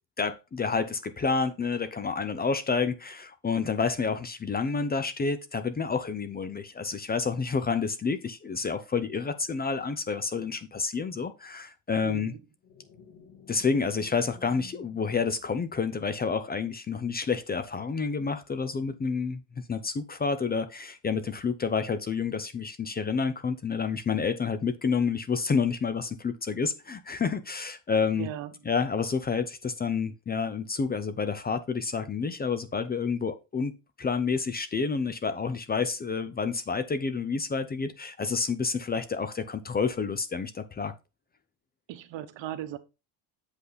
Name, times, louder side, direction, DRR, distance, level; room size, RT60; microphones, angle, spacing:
voice 1, 0.2-12.3 13.5-28.3 28.7-33.7 34.0-40.9, left 5 dB, 20° left, 0.5 m, -29 dB
voice 2, 12.0-12.4 28.2-28.5 41.9-42.8, right 12 dB, 75° right, 1.1 m, -37 dB
sound 1, 12.6-16.3, left 8 dB, 65° left, 2.3 m, -53 dB
8.1 x 5.5 x 4.0 m
cardioid pair, 150°, 45 cm